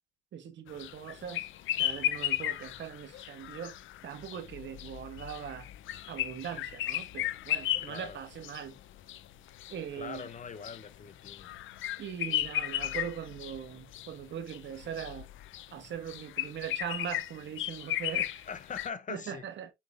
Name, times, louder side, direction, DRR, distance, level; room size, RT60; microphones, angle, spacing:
voice 1, 0.3-1.4 1.8-3.7 4.0-5.7 6.1-8.8 9.7-10.2 12.0-15.3 15.7-18.4 19.1-19.7, right 8 dB, 65° right, 1.7 m, -40 dB
sound 1, 0.7-18.9, left 13 dB, 80° left, 0.7 m, -35 dB
voice 2, 7.8-8.2 9.9-11.5 18.5-19.4, left 6 dB, 40° left, 1.0 m, -42 dB
7.1 x 5.5 x 2.5 m
cardioid pair, 90°, 20 cm